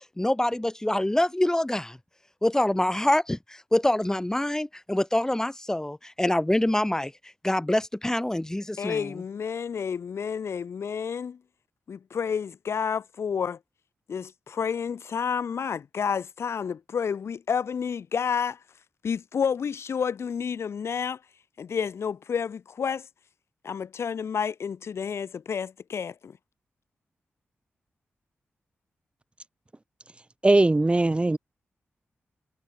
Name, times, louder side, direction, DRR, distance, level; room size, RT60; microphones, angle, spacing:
voice 1, 0.2-2.0 2.4-3.4 3.7-7.1 7.4-9.1, left 1 dB, 10° left, 1.6 m, -25 dB
voice 2, 8.8-11.4 11.9-13.6 14.1-18.6 19.0-21.2 21.6-23.1 23.6-26.3, left 6 dB, 70° left, 1.5 m, -30 dB
voice 3, 30.4-31.4, right 2 dB, 25° right, 1.2 m, -20 dB
cardioid pair, 55°, 5 cm